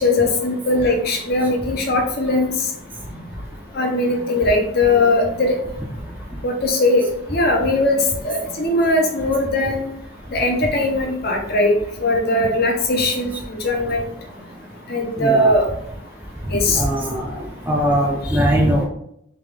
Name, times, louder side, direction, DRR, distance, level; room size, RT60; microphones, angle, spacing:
voice 1, 0.0-2.5 3.7-5.5 6.4-7.0 7.3-9.8 10.3-11.7 12.0-14.0 14.9-15.6 16.5-16.8, left 2 dB, 45° left, 2 dB, 0.7 m, -19 dB
voice 2, 15.2-15.5 16.8-17.2 17.7-18.9, equal, 10° right, -2 dB, 0.4 m, -19 dB
3.4 x 3.0 x 3.4 m, 0.73 s
head